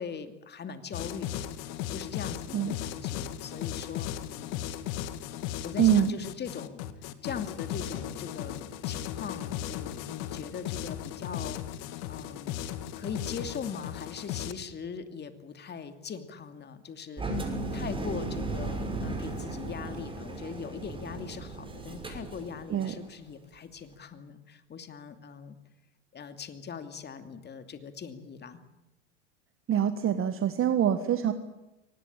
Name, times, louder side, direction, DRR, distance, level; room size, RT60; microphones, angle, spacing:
voice 1, 0.0-1.4 1.9-4.6 5.6-6.8 7.2-11.6 12.1-12.6 13.0-25.6 26.1-28.6, left 6 dB, 30° left, 9 dB, 2.7 m, -41 dB
sound 1, 0.9-14.5, left 11 dB, 60° left, 2.0 m, -36 dB
voice 2, 5.8-6.2 22.7-22.9 29.7-31.3, right 9 dB, 35° right, 9 dB, 1.6 m, -25 dB
Engine, 17.2-23.0, right 2 dB, 15° right, 5.9 m, -36 dB
23.5 x 19.5 x 9.0 m, 0.98 s
hypercardioid pair, 95°, 36 cm